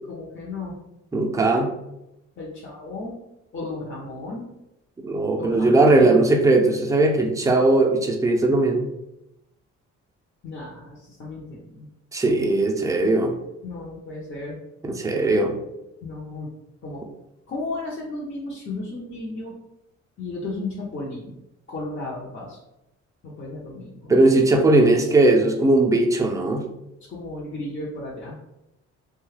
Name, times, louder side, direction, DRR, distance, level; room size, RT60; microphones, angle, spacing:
voice 1, 0.1-0.7 2.4-3.2 3.5-4.5 5.4-6.2 10.4-11.9 13.6-14.6 16.0-16.5 16.8-17.1 17.5-19.6 20.2-21.4 21.7-22.6 23.2-24.2 27.0-28.4, left 2 dB, 40° left, -5 dB, 0.7 m, -34 dB
voice 2, 1.1-1.7 5.0-8.9 12.1-13.3 14.8-15.6 24.1-26.7, right 2 dB, 10° right, 1 dB, 0.4 m, -19 dB
2.7 x 2.3 x 3.2 m, 0.89 s
cardioid pair, 90°, 30 cm